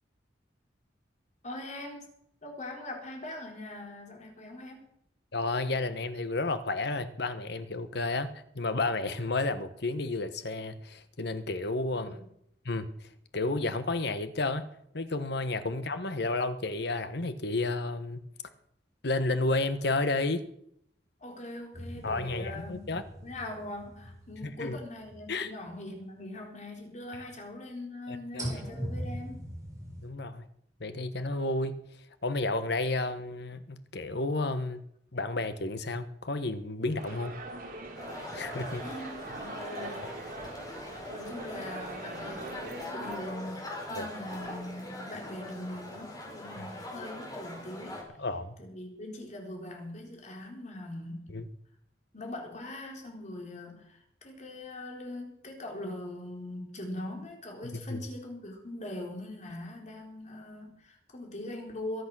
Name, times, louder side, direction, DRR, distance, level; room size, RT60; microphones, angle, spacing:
voice 1, 1.4-2.1 2.4-4.9 11.9-12.3 21.2-22.9 23.2-29.5 38.8-40.2 41.1-48.0 48.6-51.3 52.1-62.0, left 1 dB, 40° left, 3.8 m, -41 dB
voice 2, 5.3-12.1 12.6-12.9 13.3-14.7 14.9-18.2 19.0-20.5 22.0-23.0 24.6-24.8 25.3-25.5 28.1-28.5 30.0-30.4 30.8-31.8 32.2-34.8 35.1-37.4 38.3-38.8 43.9-44.1 46.6-46.7 48.2-48.6 51.3-51.4 57.7-58.0, left 2 dB, 65° left, 1.2 m, -31 dB
sound 1, 21.7-25.8 26.2-26.3 28.4-30.1, equal, 20° right, 4.2 m, -40 dB
sound 2, 36.9-43.2 44.3-44.6, right 2 dB, 55° right, 3.4 m, -42 dB
sound 3, 37.9-48.0, left 1 dB, 20° left, 4.8 m, -42 dB
22.5 x 8.3 x 6.2 m
head